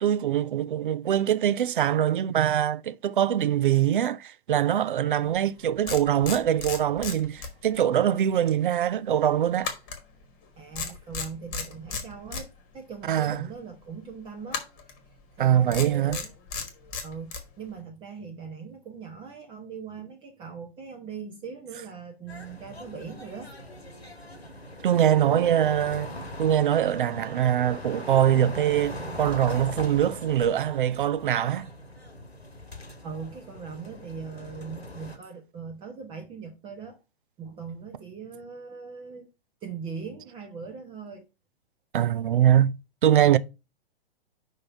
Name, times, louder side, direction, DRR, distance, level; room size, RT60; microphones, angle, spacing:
voice 1, 0.0-9.7 13.1-13.5 15.4-16.2 24.8-26.1 26.4-31.7 41.9-42.7 43.0-43.4, right 10 dB, 55° right, 0.5 m, -23 dB
sound 1, 5.4-5.5 5.9-7.9 8.2-8.4 9.6-10.5 10.7-12.5 14.5-15.0 15.7-17.5, left 5 dB, 25° left, 1.3 m, -34 dB
voice 2, 10.6-14.6 15.3-16.3 17.0-23.5 25.1-25.7 33.0-37.0 37.4-39.3 39.6-41.2, right 5 dB, 15° right, 0.7 m, -40 dB
sound 2, 22.3-35.2, left 1 dB, 85° left, 1.4 m, -40 dB
5.4 x 3.9 x 5.5 m
figure-of-eight pair, 115°, 31 cm